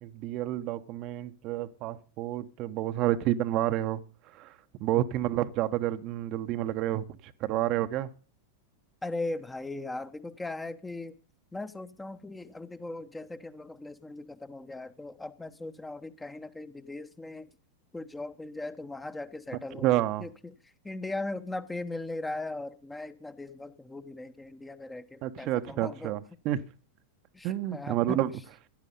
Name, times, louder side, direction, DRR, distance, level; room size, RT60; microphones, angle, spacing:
voice 1, 0.0-4.0 4.3-8.1 19.8-20.3 25.2-26.6 27.4-28.3, right 13 dB, 40° right, 1.1 m, -29 dB
voice 2, 9.0-11.2 11.5-17.5 17.9-20.5 20.8-26.1 27.3-28.2, left 2 dB, 10° left, 1.1 m, -39 dB
16.5 x 11.0 x 5.5 m
figure-of-eight pair, 90°, 0 cm